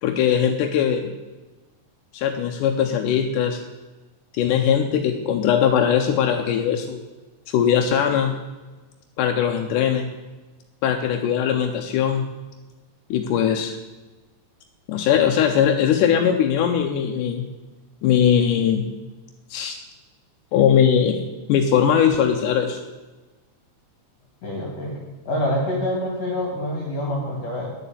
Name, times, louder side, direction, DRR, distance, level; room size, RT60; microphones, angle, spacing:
voice 1, 0.0-1.1 2.1-3.6 4.3-7.0 7.5-8.3 9.2-10.1 10.8-12.2 13.1-13.8 14.9-17.5 18.0-18.9 19.5-19.8 20.5-22.8, left 8 dB, 80° left, 4 dB, 2.3 m, -20 dB
voice 2, 24.4-25.0 25.2-27.7, left 1 dB, 55° left, -3 dB, 3.1 m, -26 dB
10.5 x 7.1 x 8.4 m, 1.2 s
omnidirectional pair, 3.6 m